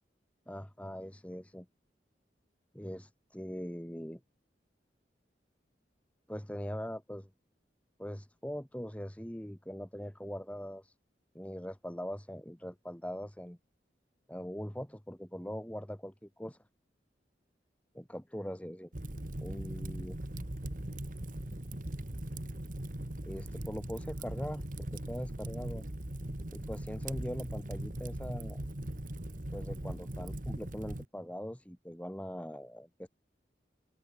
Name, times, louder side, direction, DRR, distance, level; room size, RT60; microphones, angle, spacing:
voice 1, 0.5-1.7 2.7-4.2 6.3-7.3 8.0-10.9 11.3-13.6 14.3-16.6 17.9-18.9 19.4-20.2 23.2-24.7 24.9-25.8 26.5-28.6 29.5-33.1, equal, 10° left, 1.5 m, -41 dB
Fire, 18.9-31.1, right 1 dB, 50° right, 1.8 m, -40 dB
open air
head